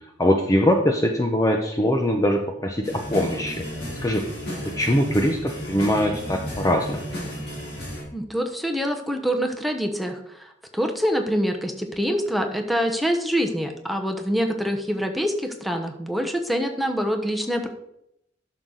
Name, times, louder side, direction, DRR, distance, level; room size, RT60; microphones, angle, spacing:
voice 1, 0.2-3.6 4.0-4.2 4.8-7.0, left 1 dB, 20° left, 3 dB, 0.7 m, -22 dB
sound 1, 2.8-8.0, equal, 60° left, 3.7 m, -33 dB
voice 2, 8.1-17.7, equal, ahead, 3 dB, 1.0 m, -25 dB
11.5 x 6.5 x 3.9 m, 0.77 s
head